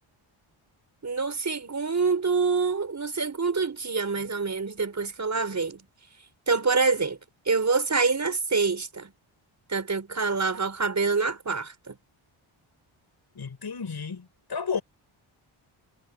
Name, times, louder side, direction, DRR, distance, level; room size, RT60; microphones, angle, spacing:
voice 1, 1.0-5.8 6.5-7.2 7.5-9.1 9.7-12.0, right 4 dB, 35° right, 5.8 m, -26 dB
voice 2, 13.3-14.8, left 6 dB, 50° left, 7.6 m, -32 dB
cardioid pair, 85°, 49 cm